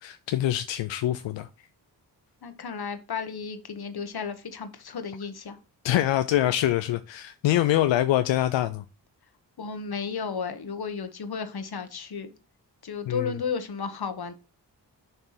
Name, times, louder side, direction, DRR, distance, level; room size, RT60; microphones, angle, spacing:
voice 1, 0.0-1.5 5.8-8.8 13.1-13.3, left 13 dB, 90° left, 0.5 m, -24 dB
voice 2, 2.4-5.6 9.6-12.3 12.8-14.3, left 5 dB, 60° left, 1.3 m, -33 dB
6.6 x 3.4 x 5.9 m
cardioid pair, 45°, 43 cm